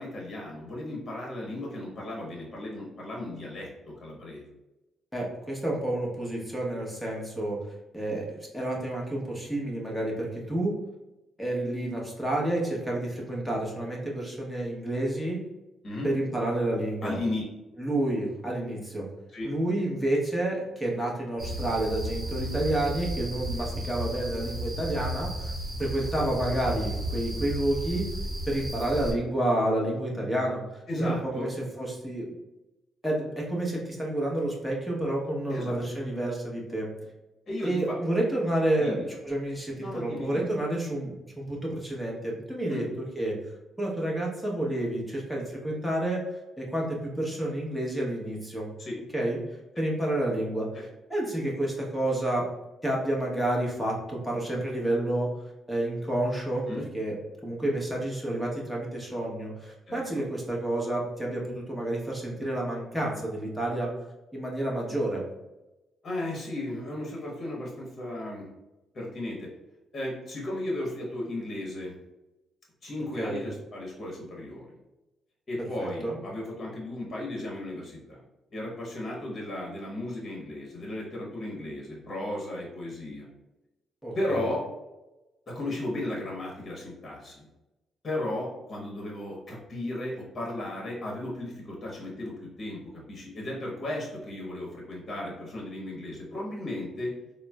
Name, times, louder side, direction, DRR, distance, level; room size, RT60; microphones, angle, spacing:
voice 1, 0.0-4.4 15.8-16.1 17.0-17.4 19.3-19.5 30.9-31.5 35.5-35.8 37.5-38.0 38.8-39.1 39.8-40.5 42.7-42.9 48.8-49.0 50.7-50.8 56.7-56.9 59.9-60.0 66.0-68.5 68.9-69.5 69.9-71.9 72.8-74.7 75.5-78.2 78.5-83.3 84.1-84.6 85.5-87.5 88.0-97.1, left 1 dB, 40° left, -3 dB, 1.0 m, -35 dB
voice 2, 5.1-7.6 7.9-10.7 11.4-15.4 16.0-17.2 17.8-19.1 19.4-25.5 25.8-28.0 28.5-32.3 33.0-36.9 37.6-43.4 43.8-46.2 46.6-48.7 49.1-52.5 52.8-55.3 55.7-56.7 56.9-57.2 57.4-63.9 64.3-65.2 73.2-73.4 75.8-76.2 84.0-84.5, right 1 dB, 5° left, -3 dB, 1.0 m, -29 dB
sound 1, 21.4-29.1, right 1 dB, 30° right, 1.0 m, -33 dB
3.9 x 2.0 x 2.3 m, 1.0 s
cardioid pair, 90°, 0 cm